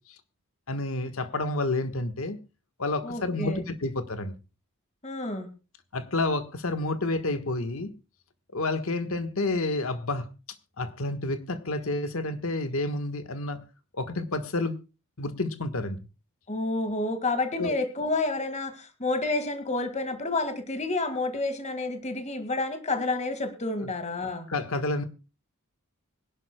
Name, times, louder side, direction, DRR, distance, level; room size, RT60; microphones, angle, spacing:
voice 1, 0.7-2.4 2.8-4.3 5.9-7.9 8.5-10.2 10.8-13.6 13.9-14.8 15.2-16.0 17.6-17.8 23.8-23.9 24.5-25.0, left 2 dB, 70° left, 1.4 m, -29 dB
voice 2, 3.0-3.6 5.0-5.5 16.5-24.5, left 2 dB, 30° left, 2.0 m, -29 dB
24.5 x 11.0 x 2.2 m
head